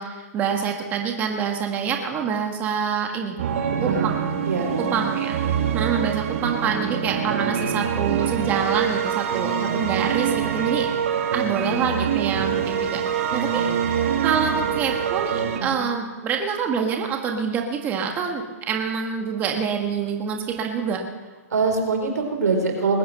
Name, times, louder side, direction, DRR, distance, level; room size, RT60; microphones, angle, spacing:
voice 1, 0.0-3.4 3.8-4.2 4.8-5.4 5.7-10.9 11.3-13.0 13.3-13.7 14.2-21.0, right 6 dB, 20° right, 2 dB, 1.6 m, -26 dB
sound 1, 3.4-15.6, right 8 dB, 55° right, 2.3 m, -25 dB
voice 2, 3.7-4.2 4.4-5.1 5.5-5.7 12.3-12.4 15.6-15.8 21.5-23.0, right 4 dB, 90° right, 3 dB, 4.3 m, -25 dB
20.5 x 9.3 x 6.7 m, 1.2 s
hypercardioid pair, 155°, 9 cm